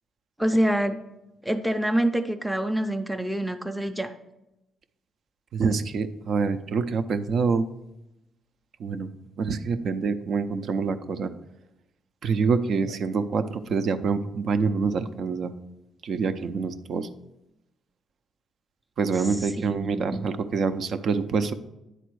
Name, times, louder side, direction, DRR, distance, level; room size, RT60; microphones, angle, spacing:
voice 1, 0.4-1.0 1.4-4.1 19.7-20.3, right 1 dB, ahead, 5 dB, 0.5 m, -26 dB
voice 2, 5.5-7.7 8.8-9.1 9.4-11.3 12.2-15.5 16.0-17.1 19.0-21.5, right 5 dB, 60° right, 10 dB, 0.5 m, -26 dB
10.0 x 4.1 x 4.7 m, 0.91 s
cardioid pair, 90°, 0 cm